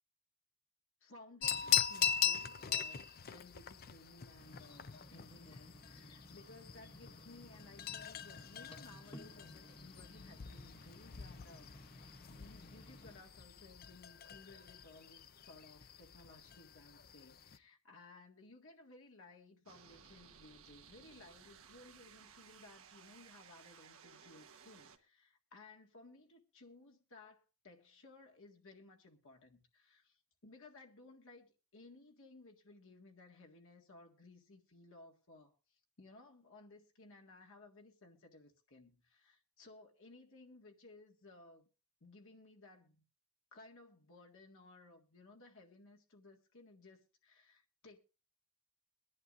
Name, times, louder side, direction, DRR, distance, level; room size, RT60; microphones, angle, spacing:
voice 1, 1.0-41.7 42.0-43.0 43.5-48.0, left 2 dB, 65° left, 1.8 m, -59 dB
sound 1, 1.4-17.6, left 9 dB, 45° left, 0.6 m, -41 dB
sound 2, 4.4-13.2, left 1 dB, 25° left, 1.1 m, -57 dB
sound 3, 19.7-25.0, right 7 dB, 65° right, 1.2 m, -59 dB
23.0 x 10.5 x 2.5 m
head